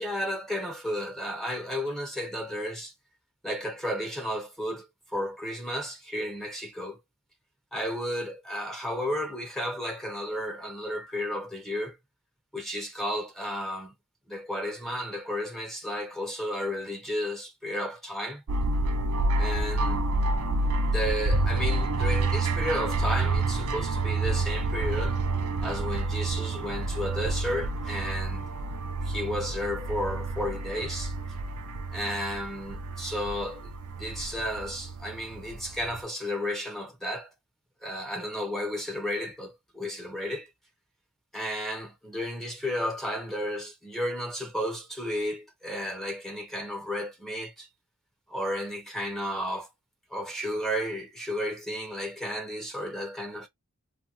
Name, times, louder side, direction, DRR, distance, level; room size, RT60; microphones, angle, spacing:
voice 1, 0.0-2.9 3.4-4.9 5.1-7.0 7.7-12.0 12.5-13.9 14.3-18.4 19.4-20.0 20.8-25.2 25.6-28.4 29.0-31.1 31.9-37.3 37.8-40.5 41.3-47.7 48.3-49.7 50.1-53.5, equal, ahead, 0.6 m, -33 dB
sound 1, 18.5-36.0, right 2 dB, 75° right, 0.5 m, -29 dB
2.6 x 2.3 x 2.9 m
head